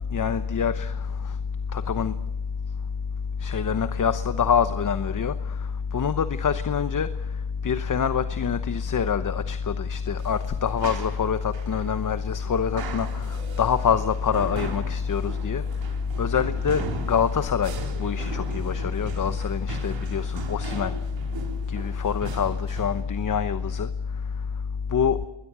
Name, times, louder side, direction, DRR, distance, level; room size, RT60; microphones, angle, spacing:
voice 1, 0.1-0.9 1.7-2.1 3.4-5.3 5.9-7.1 7.6-15.6 16.2-17.7 18.0-20.9 21.7-23.9 24.9-25.2, left 7 dB, 45° left, 11 dB, 1.0 m, -25 dB
sound 1, 10.2-23.0, right 4 dB, 75° right, 4.2 m, -39 dB
28.5 x 21.5 x 6.2 m, 0.87 s
cardioid pair, 90°, 45 cm